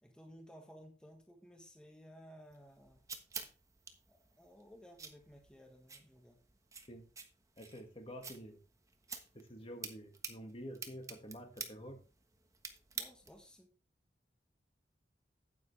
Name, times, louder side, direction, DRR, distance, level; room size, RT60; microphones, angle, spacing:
voice 1, 0.0-3.0 4.1-6.4 12.9-13.7, equal, 5° left, 2 dB, 1.6 m, -57 dB
sound 1, 2.5-13.5, right 5 dB, 20° right, 1.2 m, -50 dB
voice 2, 7.6-8.6 9.3-12.0, equal, 30° left, 5 dB, 1.8 m, -48 dB
9.7 x 9.6 x 3.3 m, 0.36 s
head